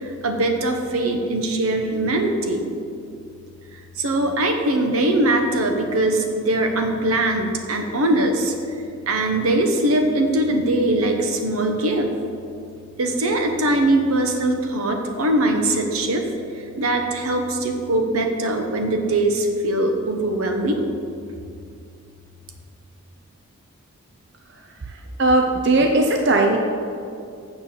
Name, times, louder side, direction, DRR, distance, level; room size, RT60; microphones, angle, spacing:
voice 1, 0.0-2.6 4.0-8.5 9.1-12.1 13.0-16.2 16.8-20.8, right 1 dB, 85° right, 4 dB, 1.1 m, -21 dB
voice 2, 24.9-26.6, right 2 dB, 55° right, 3 dB, 0.6 m, -18 dB
7.0 x 6.7 x 7.1 m, 2.4 s
head